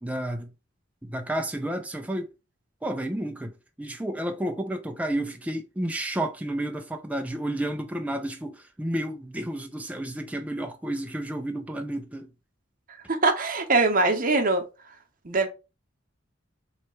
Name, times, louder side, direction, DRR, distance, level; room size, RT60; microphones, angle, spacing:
voice 1, 0.0-0.5 1.0-2.3 2.8-12.3, right 1 dB, 5° right, 0.5 m, -31 dB
voice 2, 13.1-14.6 15.2-15.5, right 3 dB, 45° right, 0.8 m, -22 dB
3.2 x 2.9 x 4.4 m
head